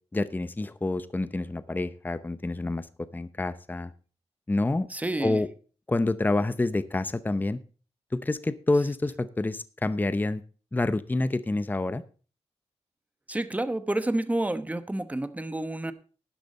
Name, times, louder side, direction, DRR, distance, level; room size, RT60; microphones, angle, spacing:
voice 1, 0.1-2.9 3.1-3.9 4.5-4.9 5.2-5.5 5.9-7.6 8.1-10.4 10.7-12.0, left 2 dB, 15° left, 15 dB, 0.6 m, -27 dB
voice 2, 4.9-5.4 13.3-15.9, right 1 dB, 15° right, 12 dB, 1.0 m, -29 dB
12.0 x 10.5 x 4.1 m, 0.37 s
wide cardioid pair, 105°, 11 cm